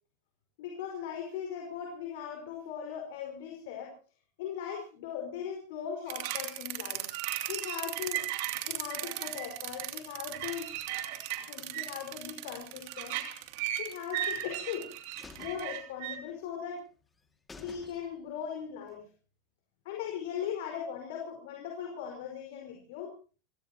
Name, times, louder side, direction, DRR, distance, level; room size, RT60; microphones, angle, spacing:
voice 1, 0.6-3.9 4.4-7.1 7.5-8.2 8.7-10.8 11.4-13.2 13.8-14.9 15.4-16.8 17.6-19.0 19.9-23.1, left 8 dB, 75° left, 2 dB, 5.1 m, -39 dB
sound 1, 6.1-16.2, right 13 dB, 65° right, 2.8 m, -36 dB
sound 2, 14.1-14.8 15.2-16.5 16.8-16.9 17.2-17.3 17.5-18.4 18.7-18.8, left 3 dB, 15° left, 2.3 m, -52 dB
28.0 x 17.0 x 3.0 m, 0.37 s
supercardioid pair, 135°, 0 cm